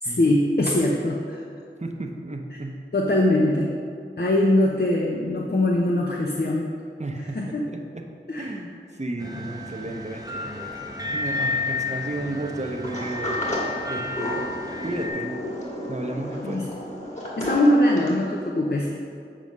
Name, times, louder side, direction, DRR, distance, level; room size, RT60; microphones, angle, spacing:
voice 1, 0.0-1.4 2.9-3.7 4.2-6.7 7.4-7.6 8.3-8.5 16.4-16.7 17.4-18.9, left 1 dB, 50° left, -2 dB, 0.7 m, -22 dB
voice 2, 1.8-2.8 7.0-8.0 8.4-10.8 11.1-14.5 14.8-15.3 15.9-16.6, right 2 dB, 35° right, 3 dB, 0.8 m, -33 dB
sound 1, 9.2-15.1, left 3 dB, 20° right, 1.1 m, -31 dB
Sliding door, 12.8-18.3, equal, 35° left, 1.9 m, -32 dB
7.6 x 4.9 x 5.4 m, 2.4 s
wide cardioid pair, 45°, 20 cm